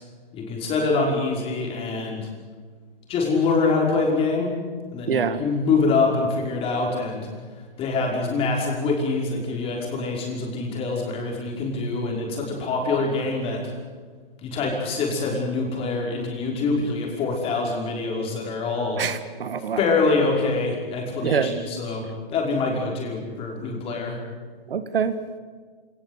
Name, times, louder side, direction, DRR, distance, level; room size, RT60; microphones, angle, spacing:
voice 1, 0.3-2.3 3.1-4.5 4.9-7.3 7.8-13.7 14.4-19.0 19.8-24.2, left 3 dB, 20° left, 0 dB, 5.4 m, -25 dB
voice 2, 5.1-5.4 19.0-19.8 21.2-21.6 24.7-25.1, right 7 dB, 70° right, 11 dB, 1.8 m, -25 dB
27.5 x 19.0 x 8.3 m, 1.5 s
hypercardioid pair, 150°, 30 cm